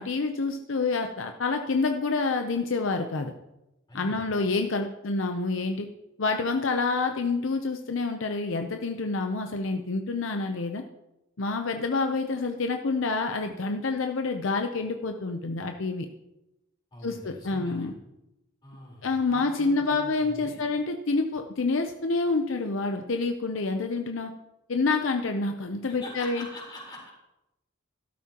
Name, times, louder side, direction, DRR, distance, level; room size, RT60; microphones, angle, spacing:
voice 1, 0.0-3.3 3.9-5.9 6.2-10.8 11.4-16.1 17.0-17.9 19.0-24.3 24.7-26.5, left 3 dB, 70° left, 5 dB, 0.7 m, -28 dB
voice 2, 3.9-4.3 16.9-17.9 18.6-20.7 25.9-27.1, left 1 dB, 20° left, -4 dB, 4.1 m, -44 dB
13.0 x 12.0 x 2.9 m, 0.92 s
head